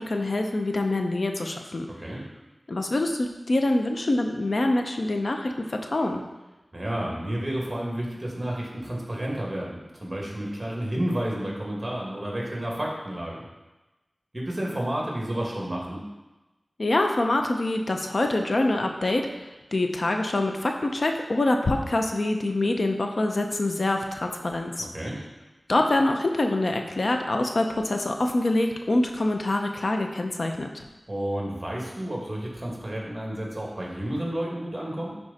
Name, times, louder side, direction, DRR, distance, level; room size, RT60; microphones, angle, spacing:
voice 1, 0.0-1.9 2.7-6.2 16.8-24.9 25.7-30.9, left 2 dB, 65° left, 4 dB, 0.7 m, -25 dB
voice 2, 1.9-2.2 6.7-13.5 14.3-16.0 24.8-25.2 31.1-35.1, right 1 dB, 25° right, -3 dB, 2.3 m, -31 dB
9.9 x 4.7 x 4.2 m, 1.1 s
wide cardioid pair, 75°, 0 cm